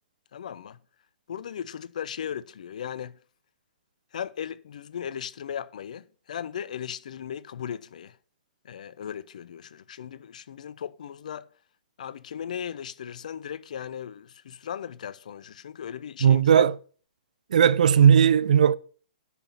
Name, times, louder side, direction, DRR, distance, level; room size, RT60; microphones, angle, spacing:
voice 1, 0.3-0.8 1.3-3.2 4.1-8.2 8.6-11.5 12.0-16.4, left 8 dB, 55° left, 0.6 m, -37 dB
voice 2, 16.2-16.7 17.5-18.8, right 8 dB, 55° right, 0.6 m, -17 dB
10.0 x 5.9 x 5.5 m
figure-of-eight pair, 115°, 5 cm